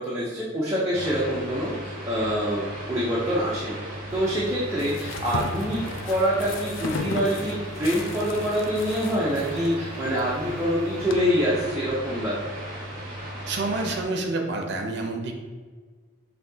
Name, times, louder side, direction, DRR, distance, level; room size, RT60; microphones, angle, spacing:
voice 1, 0.0-12.5, equal, 15° right, -7 dB, 0.6 m, -26 dB
sound 1, 0.9-14.0, right 1 dB, 40° right, 1.2 m, -36 dB
sound 2, 4.1-11.2, left 3 dB, 65° left, 0.4 m, -36 dB
voice 2, 13.5-15.3, right 2 dB, 55° right, 3 dB, 0.6 m, -28 dB
5.7 x 2.7 x 2.7 m, 1.5 s
head